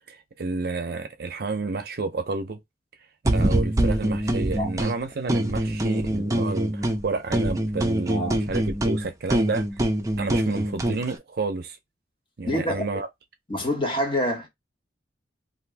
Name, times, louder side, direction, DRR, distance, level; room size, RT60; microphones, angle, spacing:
voice 1, 0.1-2.6 3.3-9.7 10.2-11.8 12.4-13.1, right 3 dB, 60° right, 0.6 m, -30 dB
sound 1, 3.2-4.9 5.3-7.0 7.3-11.0, right 1 dB, 20° right, 0.5 m, -24 dB
voice 2, 12.4-13.0 13.5-14.5, equal, 30° left, 1.3 m, -26 dB
2.6 x 2.6 x 3.3 m
head